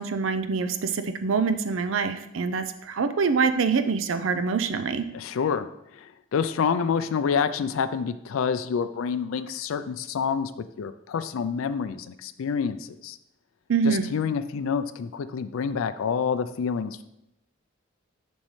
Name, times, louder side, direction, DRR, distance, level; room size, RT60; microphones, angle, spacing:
voice 1, 0.0-5.1 13.7-14.1, right 5 dB, 75° right, 9 dB, 0.5 m, -25 dB
voice 2, 5.1-5.7 5.9-10.5 10.8-13.2 13.8-17.0, left 6 dB, 85° left, 11 dB, 0.4 m, -28 dB
7.2 x 5.3 x 3.2 m, 0.84 s
head